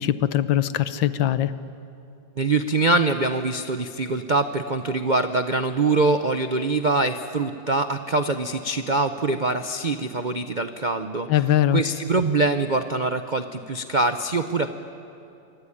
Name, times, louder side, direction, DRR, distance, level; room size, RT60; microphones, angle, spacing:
voice 1, 0.0-1.5 11.3-11.8, left 12 dB, 75° left, 13 dB, 1.6 m, -21 dB
voice 2, 2.4-11.3 11.7-14.7, right 3 dB, 55° right, 8 dB, 0.5 m, -24 dB
25.0 x 24.5 x 9.9 m, 2.7 s
omnidirectional pair, 2.1 m